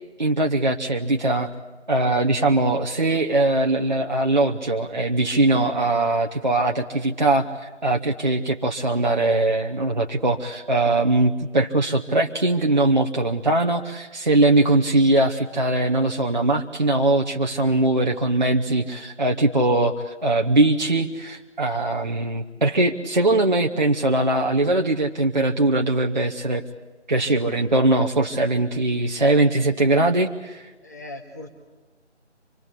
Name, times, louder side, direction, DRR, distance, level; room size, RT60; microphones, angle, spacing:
voice 1, 0.2-1.5 1.9-26.6 27.1-30.6, right 2 dB, 40° right, 1 dB, 0.9 m, -21 dB
voice 2, 15.0-15.4 30.8-31.5, left 2 dB, 15° left, 1 dB, 1.1 m, -40 dB
25.5 x 20.5 x 8.2 m, 1.3 s
figure-of-eight pair, 165°, 36 cm